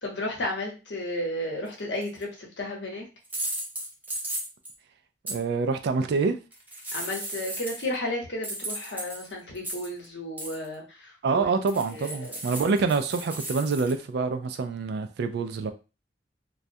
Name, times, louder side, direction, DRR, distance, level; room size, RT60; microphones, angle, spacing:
voice 1, 0.0-3.0 6.9-11.4 11.9-12.4, left 1 dB, 80° left, 0.9 m, -33 dB
sound 1, 2.0-2.2 3.2-4.7 5.3-5.4 6.5-7.9 8.4-10.1 10.4-10.7 11.7-13.9, right 1 dB, 10° right, 0.5 m, -35 dB
voice 2, 5.2-6.4 11.2-15.7, right 4 dB, 65° right, 0.3 m, -26 dB
2.3 x 2.1 x 2.6 m
head